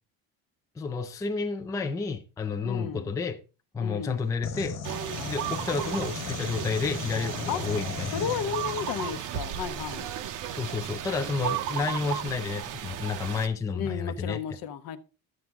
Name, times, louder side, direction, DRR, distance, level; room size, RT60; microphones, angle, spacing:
voice 1, 0.8-3.4 3.7-4.8 5.3-8.2 10.5-14.4, left 4 dB, 10° left, 0.4 m, -31 dB
voice 2, 2.6-3.1 3.8-4.2 7.5-7.6 8.1-10.2 13.7-15.0, left 8 dB, 60° left, 0.9 m, -33 dB
sound 1, 4.4-9.2, left 5 dB, 45° left, 1.4 m, -37 dB
sound 2, 4.8-13.5, right 10 dB, 55° right, 0.8 m, -34 dB
11.0 x 7.6 x 3.5 m
cardioid pair, 160°, 38 cm